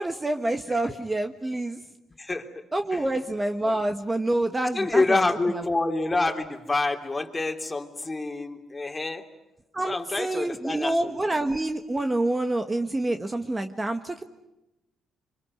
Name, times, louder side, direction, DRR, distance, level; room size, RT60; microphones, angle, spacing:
voice 1, 0.0-1.8 2.7-5.6 9.7-14.2, right 1 dB, 20° right, 7 dB, 1.4 m, -27 dB
voice 2, 4.7-9.2 9.8-11.2, left 2 dB, 20° left, 5 dB, 3.1 m, -27 dB
25.5 x 24.5 x 9.7 m, 0.96 s
cardioid pair, 90°, 0 cm